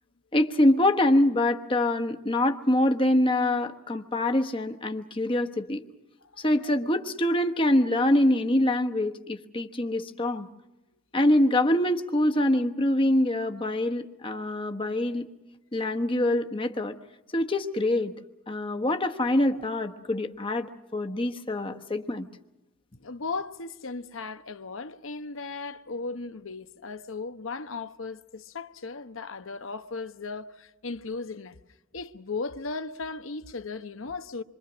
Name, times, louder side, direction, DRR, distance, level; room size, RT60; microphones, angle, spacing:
voice 1, 0.3-5.8 6.4-10.5 11.1-15.3 15.7-17.0 17.3-18.1 18.5-22.2, left 1 dB, 25° left, 1.1 m, -25 dB
voice 2, 23.0-31.6 31.9-34.4, left 4 dB, 70° left, 1.0 m, -36 dB
27.5 x 24.0 x 6.2 m
head